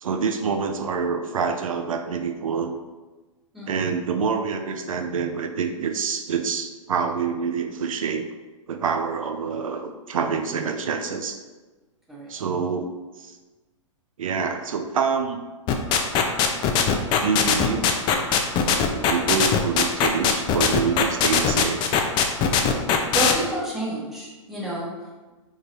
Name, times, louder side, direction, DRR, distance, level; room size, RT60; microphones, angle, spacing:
voice 1, 0.0-2.7 3.7-8.3 8.7-11.4 12.3-12.9 13.2-13.4 14.2-15.4 17.2-17.9 18.9-21.9, right 6 dB, 85° right, 6 dB, 0.4 m, -26 dB
voice 2, 3.5-3.9 12.1-12.3 23.1-25.3, right 1 dB, ahead, -6 dB, 1.0 m, -30 dB
sound 1, 15.7-23.3, left 7 dB, 30° left, 0.4 m, -20 dB
3.6 x 3.1 x 2.7 m, 1.2 s
hypercardioid pair, 115°, 17 cm